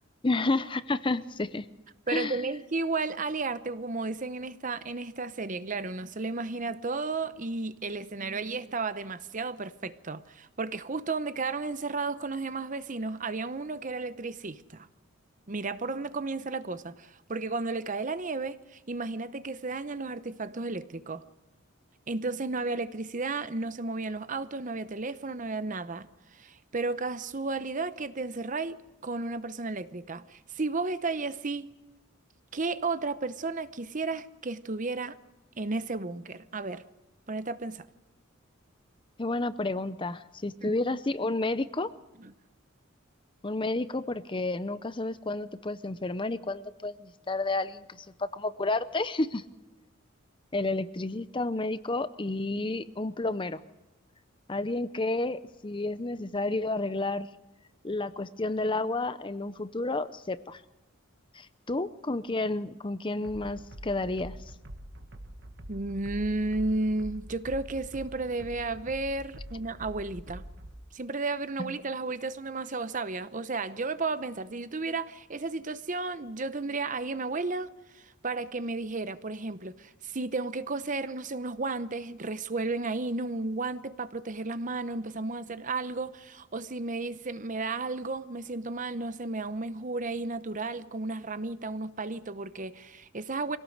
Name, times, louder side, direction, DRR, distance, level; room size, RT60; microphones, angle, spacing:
voice 1, 0.2-1.7 2.1-2.4 39.2-41.9 43.4-49.4 50.5-53.6 54.5-57.3 57.8-60.6 61.3-64.3 71.6-71.7, left 2 dB, 25° left, 0.6 m, -31 dB
voice 2, 2.1-14.9 15.5-21.2 22.1-28.8 29.0-31.7 32.5-35.2 35.6-36.8 37.3-37.9 40.6-40.8 42.2-42.3 65.7-70.4 70.9-93.6, right 3 dB, 40° right, 0.8 m, -33 dB
sound 1, 63.2-70.7, right 1 dB, 55° right, 1.5 m, -44 dB
24.5 x 17.5 x 6.5 m
head